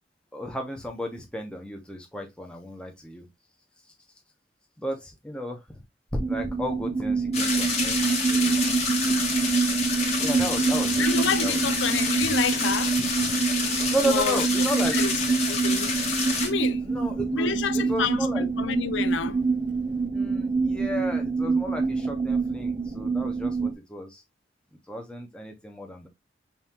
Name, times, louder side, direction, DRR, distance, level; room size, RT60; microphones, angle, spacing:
voice 1, 0.3-3.3 4.8-5.6 6.3-8.6 10.2-11.8 13.9-15.0 16.8-18.5 20.1-24.2 24.9-26.1, equal, 5° left, 0.8 m, -33 dB
sound 1, 6.2-23.7, right 4 dB, 30° right, 0.6 m, -26 dB
sound 2, 7.3-16.5, left 4 dB, 35° left, 1.4 m, -28 dB
voice 2, 11.0-13.4 14.1-14.4 14.9-15.1 15.4-15.9 16.4-16.8 17.3-19.4, left 6 dB, 80° left, 0.4 m, -29 dB
5.5 x 2.7 x 2.9 m
head